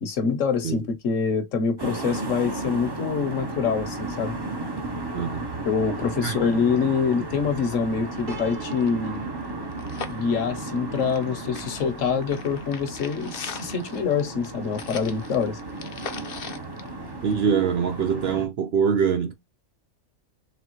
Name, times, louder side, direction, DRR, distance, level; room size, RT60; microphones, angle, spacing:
voice 1, 0.0-4.3 5.6-9.2 10.1-15.6, left 6 dB, 65° left, 1.3 m, -25 dB
sound 1, 1.8-18.5, right 2 dB, 25° right, 0.7 m, -34 dB
sound 2, 7.4-7.5 7.7-7.8 8.1-11.3 11.5-17.6 18.0-18.1, left 6 dB, 50° left, 0.8 m, -40 dB
Piano, 8.3-11.5, right 5 dB, 90° right, 1.6 m, -46 dB
voice 2, 17.2-19.3, right 6 dB, 65° right, 0.7 m, -23 dB
4.1 x 3.3 x 3.0 m
omnidirectional pair, 1.5 m